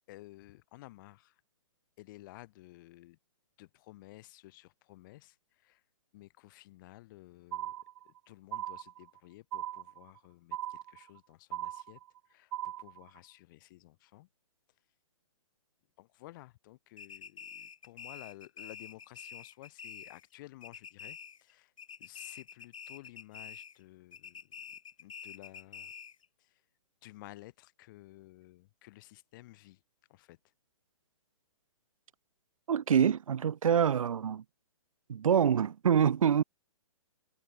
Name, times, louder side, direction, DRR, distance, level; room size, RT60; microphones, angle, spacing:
voice 1, 0.1-1.4 2.0-3.2 3.6-5.8 6.1-7.7 8.0-12.0 12.3-14.3 16.0-21.7 22.0-25.9 26.4-26.6 27.0-29.8 30.1-30.4, left 18 dB, 40° left, 7.7 m, -54 dB
sound 1, 7.5-8.2 8.5-9.2 9.5-10.2 10.5-11.2 11.5-12.2 12.5-13.2, right 13 dB, 45° right, 2.3 m, -39 dB
sound 2, 17.0-20.3 20.6-21.5 21.8-23.8 24.1-26.3, left 7 dB, 75° left, 2.8 m, -47 dB
voice 2, 32.7-34.4 35.1-36.4, right 8 dB, 80° right, 0.6 m, -26 dB
hypercardioid pair, 150°, 17 cm